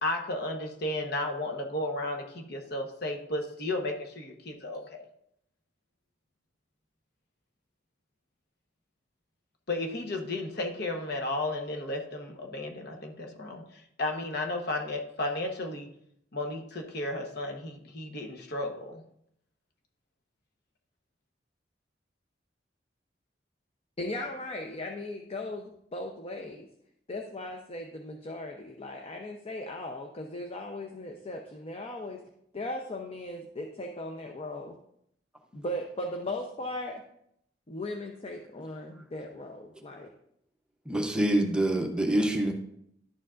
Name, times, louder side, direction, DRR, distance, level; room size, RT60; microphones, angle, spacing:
voice 1, 0.0-5.0 9.7-13.6 14.0-15.9 16.3-19.0, left 2 dB, 60° left, 2 dB, 1.1 m, -33 dB
voice 2, 24.0-26.7 27.1-32.2 32.5-34.8 35.5-37.0 37.7-40.1, left 1 dB, 35° left, 3 dB, 0.7 m, -37 dB
voice 3, 40.9-42.5, right 1 dB, 5° right, 3 dB, 0.8 m, -26 dB
11.0 x 7.0 x 2.5 m, 0.73 s
head